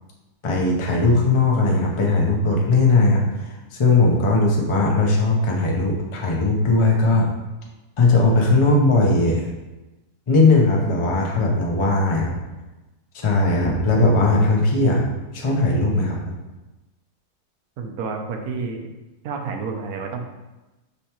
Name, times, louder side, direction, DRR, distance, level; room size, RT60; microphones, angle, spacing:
voice 1, 0.4-7.3 8.0-9.4 10.3-12.3 13.1-15.0 15.3-16.2, left 2 dB, 40° left, -1 dB, 0.4 m, -18 dB
voice 2, 17.8-18.9 19.2-20.2, right 4 dB, 75° right, 3 dB, 1.1 m, -29 dB
5.5 x 3.3 x 2.9 m, 1.1 s
omnidirectional pair, 1.7 m